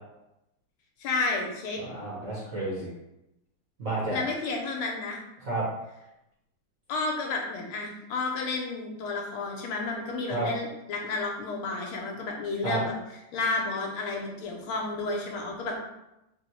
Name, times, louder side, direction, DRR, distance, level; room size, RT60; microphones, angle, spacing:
voice 1, 1.0-1.8 4.1-5.2 6.9-12.9 13.3-15.7, left 3 dB, 80° left, 0 dB, 1.5 m, -31 dB
voice 2, 1.8-2.9 3.8-4.2 5.4-5.6 10.3-10.5 12.6-12.8, right 2 dB, 50° right, -7 dB, 1.1 m, -31 dB
4.2 x 2.0 x 4.4 m, 0.89 s
omnidirectional pair, 2.4 m